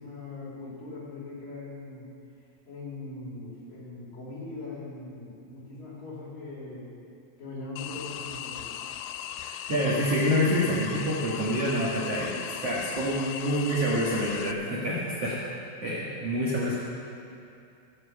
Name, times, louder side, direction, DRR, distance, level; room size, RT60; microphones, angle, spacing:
voice 1, 0.0-2.1 2.7-6.9 7.4-8.7, left 2 dB, 50° left, -6 dB, 4.3 m, -40 dB
sound 1, 7.8-14.5, left 11 dB, 85° left, 3.1 m, -38 dB
voice 2, 9.4-12.3 12.6-15.4 15.8-16.8, equal, 65° right, -6 dB, 1.5 m, -27 dB
16.5 x 7.5 x 7.3 m, 2.5 s
omnidirectional pair, 5.6 m